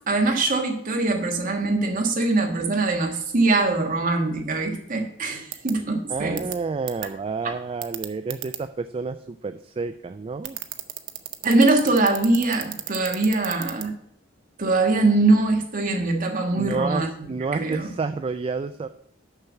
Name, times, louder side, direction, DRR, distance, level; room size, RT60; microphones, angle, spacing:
voice 1, 0.1-6.4 11.4-13.9 14.6-17.1 17.5-17.9, right 2 dB, 45° right, 3 dB, 1.4 m, -22 dB
sound 1, 5.5-5.7 6.4-6.5 6.9-7.1 7.8-8.6 10.4-13.8, right 14 dB, 65° right, 0.7 m, -32 dB
voice 2, 6.1-10.6 16.5-18.9, right 4 dB, 30° right, 10 dB, 0.3 m, -30 dB
6.6 x 5.8 x 7.1 m, 0.69 s
head